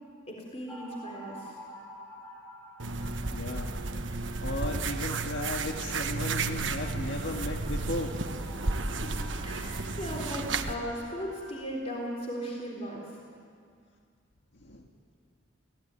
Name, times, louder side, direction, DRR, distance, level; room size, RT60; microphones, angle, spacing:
voice 1, 0.3-1.5 8.8-9.1 9.4-13.1, equal, 35° left, -1 dB, 3.7 m, -37 dB
sound 1, 0.7-11.6, equal, 15° left, 3.5 m, -49 dB
sound 2, 2.8-10.7, right 3 dB, 80° right, 1.2 m, -33 dB
voice 2, 3.3-3.8 4.2-8.1 14.6-14.9, left 1 dB, 70° left, 2 dB, 1.8 m, -36 dB
26.5 x 17.5 x 9.6 m, 2.3 s
head